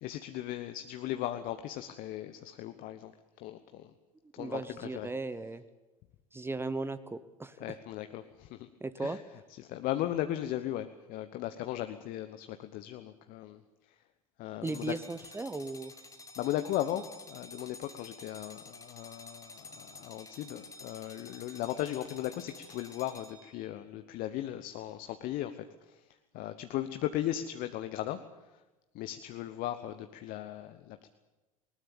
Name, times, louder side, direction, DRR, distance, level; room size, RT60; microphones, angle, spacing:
voice 1, 0.0-3.1 3.4-3.9 4.3-5.1 7.6-8.7 9.0-9.2 9.6-13.6 13.9-14.0 14.4-14.9 16.4-28.6 28.9-31.1, left 13 dB, 50° left, 9 dB, 1.2 m, -37 dB
voice 2, 4.4-5.6 6.3-7.6 8.8-9.2 14.6-15.9, right 3 dB, 15° right, 13 dB, 1.0 m, -37 dB
sound 1, 14.6-23.7, left 3 dB, 20° left, 2.2 m, -51 dB
20.0 x 19.5 x 8.7 m, 1.1 s
figure-of-eight pair, 70°, 18 cm